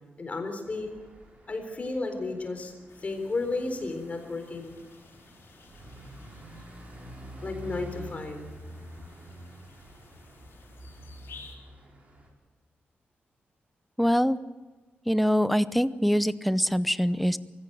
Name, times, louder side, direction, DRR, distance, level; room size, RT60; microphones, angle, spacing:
voice 1, 0.2-0.9 1.5-4.7 7.4-8.4, left 3 dB, 35° left, 6 dB, 3.9 m, -33 dB
sound 1, 0.6-12.3, right 1 dB, 35° right, 5.5 m, -47 dB
sound 2, 2.9-11.6, left 4 dB, 80° left, 4.2 m, -54 dB
voice 2, 14.0-14.4 15.1-17.4, equal, ahead, 15 dB, 0.7 m, -24 dB
23.5 x 16.0 x 7.8 m, 1.3 s
wide cardioid pair, 120°, 4 cm